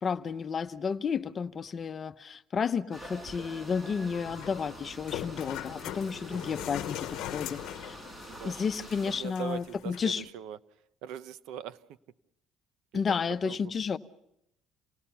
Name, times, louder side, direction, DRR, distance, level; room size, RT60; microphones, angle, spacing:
voice 1, 0.0-8.0 8.4-10.2 12.9-14.0, left 6 dB, 35° left, 0.9 m, -32 dB
sound 1, 2.9-9.2, right 1 dB, 25° right, 6.1 m, -46 dB
sound 2, 4.1-10.1, left 13 dB, 80° left, 0.9 m, -41 dB
voice 2, 9.1-10.6 11.0-11.8 13.4-13.7, right 9 dB, 80° right, 0.8 m, -40 dB
28.5 x 19.0 x 5.7 m
cardioid pair, 125°, 0 cm